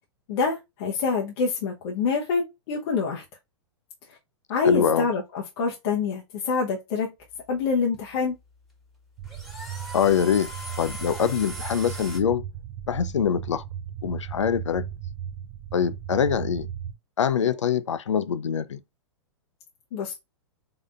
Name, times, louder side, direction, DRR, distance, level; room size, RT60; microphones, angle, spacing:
voice 1, 0.3-3.2 4.1-4.2 4.5-7.1 7.5-8.4 19.9-20.1, left 4 dB, 55° left, 0.9 m, -26 dB
voice 2, 4.6-5.1 9.9-10.5 10.8-12.4 12.9-13.6 14.0-14.9 15.7-16.7 17.2-18.8, left 8 dB, 85° left, 0.5 m, -24 dB
sound 1, 7.2-12.2, right 1 dB, ahead, 1.6 m, -41 dB
sound 2, 9.2-16.9, right 9 dB, 45° right, 0.7 m, -36 dB
3.8 x 3.7 x 2.4 m
hypercardioid pair, 105°, 15 cm